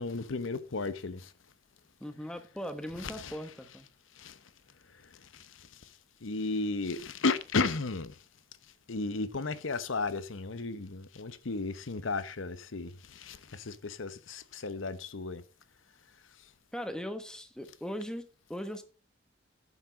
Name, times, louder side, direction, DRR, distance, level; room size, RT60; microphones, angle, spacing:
voice 1, 0.0-1.3 3.0-3.3 4.2-4.4 5.3-5.7 6.2-8.1 8.9-15.4, left 3 dB, 90° left, 0.9 m, -34 dB
voice 2, 2.0-3.9 16.7-18.8, equal, 5° left, 1.1 m, -39 dB
9.6 x 7.3 x 5.2 m
head